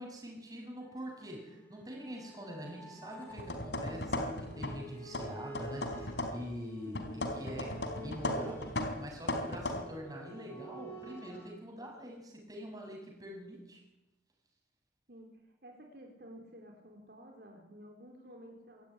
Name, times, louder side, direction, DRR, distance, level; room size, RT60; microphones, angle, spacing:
voice 1, 0.0-7.0 7.4-13.8, equal, 20° right, 1 dB, 7.0 m, -44 dB
sound 1, 0.8-11.5, right 1 dB, 10° left, 6.7 m, -50 dB
sound 2, 3.3-4.9 5.1-6.5 6.9-9.8, left 1 dB, 90° left, 3.8 m, -37 dB
voice 2, 7.0-7.4 15.1-18.9, equal, 60° right, 2 dB, 4.2 m, -53 dB
25.5 x 17.0 x 9.9 m, 0.98 s
head